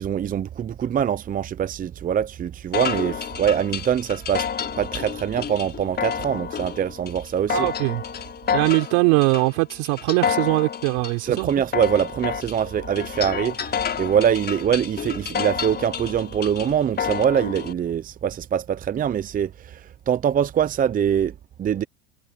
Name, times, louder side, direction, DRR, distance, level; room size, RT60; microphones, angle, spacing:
voice 1, 0.0-4.5 4.8-7.7 11.2-21.8, right 9 dB, 30° right, 0.8 m, -24 dB
sound 1, 2.7-17.7, left 7 dB, 35° left, 7.1 m, -30 dB
voice 2, 7.5-8.0 8.5-11.5, right 29 dB, 70° right, 4.6 m, -21 dB
supercardioid pair, 100°, 29 cm